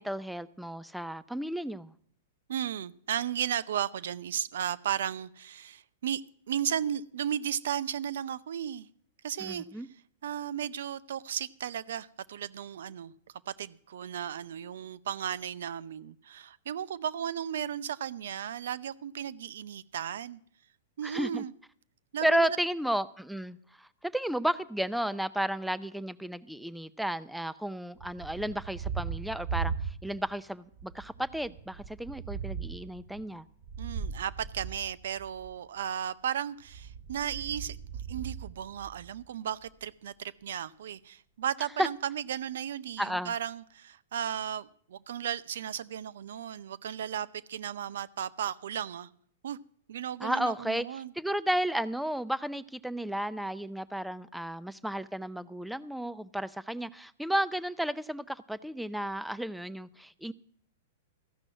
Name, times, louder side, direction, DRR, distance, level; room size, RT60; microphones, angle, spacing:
voice 1, 0.0-1.9 9.4-9.9 21.0-21.4 22.2-33.5 41.8-41.9 43.0-43.3 50.2-50.9 51.2-60.3, right 1 dB, ahead, 0.5 m, -33 dB
voice 2, 2.5-6.2 6.5-8.9 9.2-9.8 10.2-13.1 13.5-20.4 21.0-21.5 22.1-22.5 33.8-49.1 49.4-49.6 49.9-51.1, right 9 dB, 70° right, 0.6 m, -35 dB
Thunder, 28.0-30.4 30.7-35.6 36.6-39.3, right 6 dB, 35° right, 1.4 m, -39 dB
14.5 x 6.1 x 7.8 m
hypercardioid pair, 120°, 0 cm